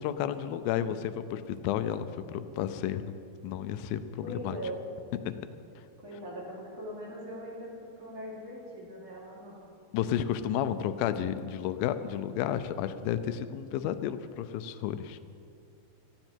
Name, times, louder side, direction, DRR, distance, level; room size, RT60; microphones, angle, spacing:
voice 1, 0.0-3.1 3.4-4.6 5.3-5.4 9.9-15.2, left 10 dB, 85° left, 11 dB, 2.1 m, -32 dB
voice 2, 4.2-4.8 6.0-9.6, equal, 40° right, -5 dB, 3.9 m, -41 dB
19.5 x 14.5 x 4.5 m, 2.6 s
omnidirectional pair, 4.8 m